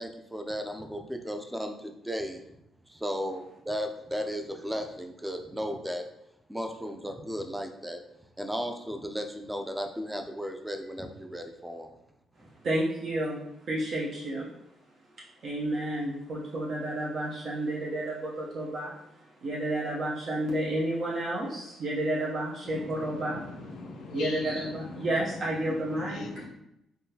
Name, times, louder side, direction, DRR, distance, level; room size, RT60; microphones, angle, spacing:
voice 1, 0.0-2.4 2.9-6.0 6.5-8.0 8.4-11.9, equal, 5° right, 4 dB, 0.4 m, -35 dB
voice 2, 12.6-13.4 13.7-14.5 15.4-19.0 19.4-23.4 24.1-26.2, right 1 dB, 55° right, -5 dB, 0.6 m, -31 dB
voice 3, 22.6-26.5, left 3 dB, 75° left, 4 dB, 0.5 m, -41 dB
3.6 x 2.3 x 2.8 m, 0.82 s
cardioid pair, 90°, 0 cm